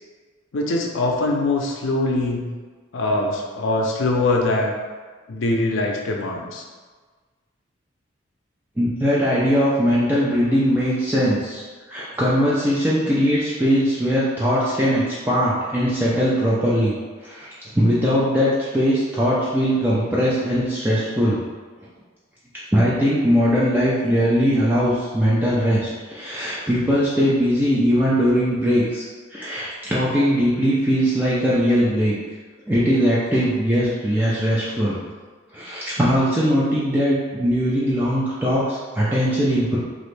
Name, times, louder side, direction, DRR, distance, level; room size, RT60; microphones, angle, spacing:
voice 1, 0.5-2.5 2.9-4.8 5.3-6.6, left 2 dB, 75° left, 0 dB, 0.5 m, -22 dB
voice 2, 8.8-11.6 11.9-16.9 17.2-17.5 17.7-21.4 22.7-29.0 29.3-32.1 32.7-35.0 35.5-39.8, equal, 10° right, -8 dB, 0.4 m, -20 dB
3.0 x 2.5 x 3.2 m, 1.4 s
head